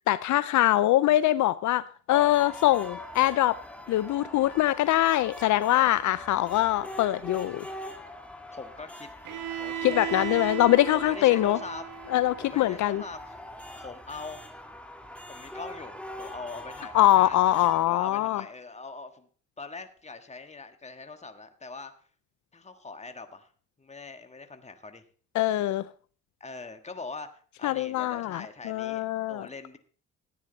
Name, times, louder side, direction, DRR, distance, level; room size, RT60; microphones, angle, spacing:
voice 1, 0.1-3.6 3.9-7.7 9.8-11.6 12.1-13.0 16.9-18.4 25.3-25.9 27.6-29.5, left 14 dB, 70° left, 16 dB, 0.5 m, -23 dB
sound 1, 2.1-17.9, left 1 dB, 5° left, 1.9 m, -43 dB
voice 2, 8.5-9.1 9.6-10.6 10.9-11.8 12.4-13.4 13.8-14.4 15.3-19.3 19.6-21.9 22.5-23.5 23.8-25.0 26.4-29.8, left 3 dB, 20° left, 8 dB, 1.6 m, -42 dB
Bowed string instrument, 9.2-13.1, right 11 dB, 90° right, 1.6 m, -37 dB
14.0 x 9.2 x 4.0 m, 0.42 s
cardioid pair, 90°, 30 cm